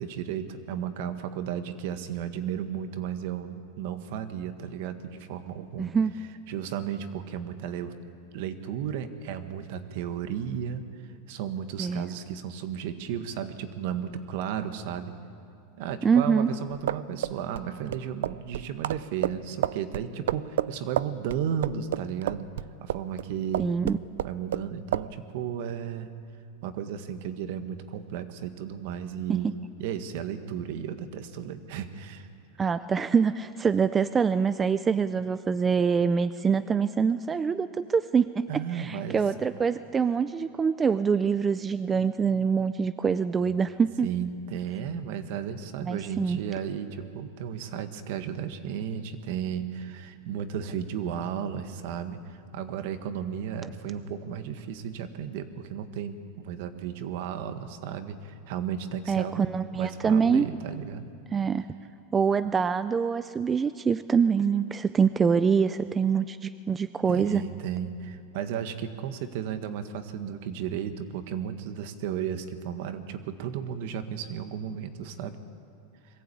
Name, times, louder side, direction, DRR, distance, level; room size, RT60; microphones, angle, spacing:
voice 1, 0.0-5.9 6.5-7.9 8.3-15.1 15.8-22.5 22.8-23.7 24.2-26.1 26.6-29.5 29.8-32.3 38.5-39.2 43.4-43.5 44.0-61.1 67.1-75.4, right 8 dB, 60° right, 9 dB, 1.5 m, -34 dB
voice 2, 5.8-6.1 11.8-12.0 16.0-16.5 23.6-24.0 29.4-29.5 32.6-44.1 45.8-46.4 59.1-60.5 61.3-61.7 62.1-67.4, right 6 dB, 15° right, 13 dB, 0.4 m, -25 dB
sound 1, 16.7-23.3 23.5-24.7 24.9-25.1, right 11 dB, 85° right, 0.4 m, -30 dB
22.0 x 15.0 x 8.5 m, 2.5 s
supercardioid pair, 145°, 0 cm